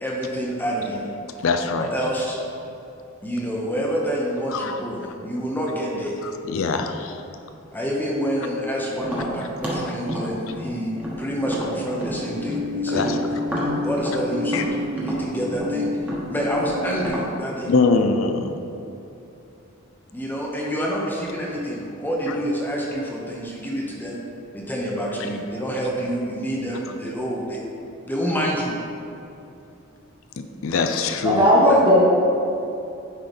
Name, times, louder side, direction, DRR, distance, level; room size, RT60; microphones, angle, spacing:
voice 1, 0.0-1.1 1.8-2.4 3.2-6.1 7.7-13.2 13.8-14.7 14.9-15.9 16.3-17.7 20.1-24.2 24.5-27.6 28.1-28.8 31.6-31.8, equal, 10° left, -3 dB, 0.7 m, -27 dB
voice 2, 1.4-1.9 4.5-4.8 6.5-7.2 12.9-13.2 13.6-13.8 14.5-14.6 17.7-18.5 30.6-31.5, left 4 dB, 75° left, 7 dB, 0.4 m, -22 dB
Tap, 9.0-12.6 12.9-17.3, equal, 10° right, 1.1 m, -31 dB
sound 1, 12.2-17.1, left 3 dB, 70° right, 0.9 m, -29 dB
voice 3, 31.2-32.0, equal, 25° right, -6 dB, 1.4 m, -15 dB
9.7 x 3.8 x 3.4 m, 2.8 s
head